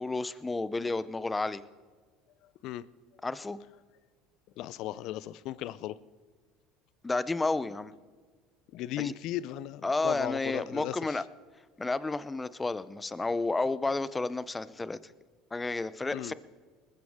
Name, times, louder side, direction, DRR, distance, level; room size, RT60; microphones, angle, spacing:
voice 1, 0.0-1.6 3.2-3.6 7.0-7.9 9.0-9.1 9.8-11.2 11.8-15.0 15.5-16.3, left 3 dB, 15° left, 16 dB, 0.7 m, -31 dB
voice 2, 4.6-6.0 8.7-11.2 16.1-16.3, left 13 dB, 65° left, 19 dB, 0.6 m, -36 dB
20.0 x 14.5 x 3.7 m, 1.5 s
supercardioid pair, 100°, 0 cm